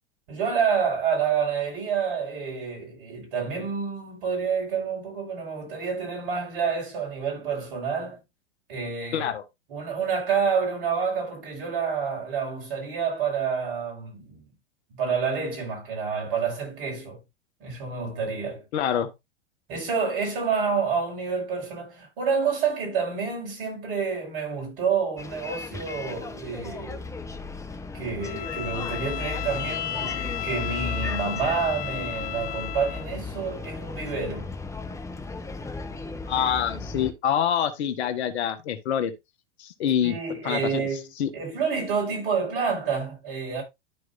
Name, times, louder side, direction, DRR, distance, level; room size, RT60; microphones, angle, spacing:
voice 1, 0.3-8.2 8.7-9.3 9.7-14.4 15.0-17.2 17.6-18.6 19.7-27.0 27.9-34.5 36.7-37.0 40.0-41.1 41.3-43.6, right 6 dB, 55° right, 5.7 m, -28 dB
voice 2, 9.1-9.4 18.7-19.1 36.3-39.1 39.6-40.2 40.4-40.9 41.2-41.3, left 9 dB, 65° left, 1.4 m, -26 dB
Bus, 25.2-37.1, left 3 dB, 10° left, 1.0 m, -35 dB
Bowed string instrument, 28.2-33.1, left 13 dB, 25° left, 0.3 m, -34 dB
13.0 x 4.7 x 2.6 m
hypercardioid pair, 100°, 36 cm